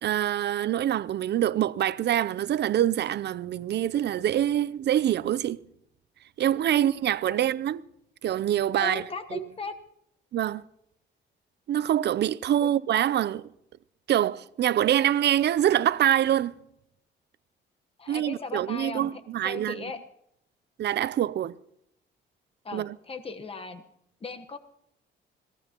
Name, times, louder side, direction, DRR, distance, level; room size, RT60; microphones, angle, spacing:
voice 1, 0.0-5.6 6.4-7.8 8.2-9.0 9.3-9.5 10.3-10.6 11.7-13.5 14.1-16.6 18.1-19.8 20.8-21.5 22.7-23.0, right 11 dB, 60° right, 0.6 m, -25 dB
voice 2, 8.8-9.7 12.6-12.7 18.0-19.1 19.4-20.0 22.6-23.8 24.2-24.6, left 4 dB, 30° left, 1.2 m, -37 dB
26.0 x 18.0 x 3.0 m
cardioid pair, 90°, 20 cm